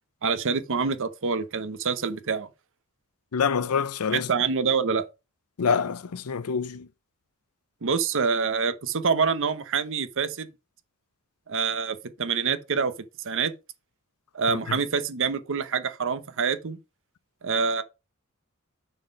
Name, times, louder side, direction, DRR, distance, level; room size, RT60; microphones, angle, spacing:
voice 1, 0.2-2.5 4.1-5.0 7.8-10.5 11.5-12.9 13.2-13.5 14.3-16.8 17.4-17.8, right 5 dB, 60° right, 0.8 m, -26 dB
voice 2, 3.3-4.3 5.6-6.9 14.7-14.8, left 6 dB, 85° left, 0.6 m, -26 dB
6.6 x 4.4 x 5.2 m
head